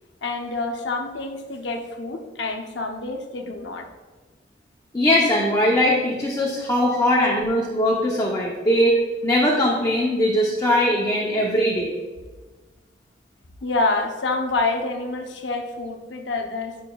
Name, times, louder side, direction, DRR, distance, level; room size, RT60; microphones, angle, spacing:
voice 1, 0.2-3.9 11.2-11.5 13.6-16.8, left 3 dB, 70° left, 4 dB, 0.7 m, -27 dB
voice 2, 4.9-9.0 9.2-11.9, left 1 dB, 20° left, -3 dB, 0.7 m, -20 dB
9.1 x 5.4 x 2.3 m, 1.3 s
head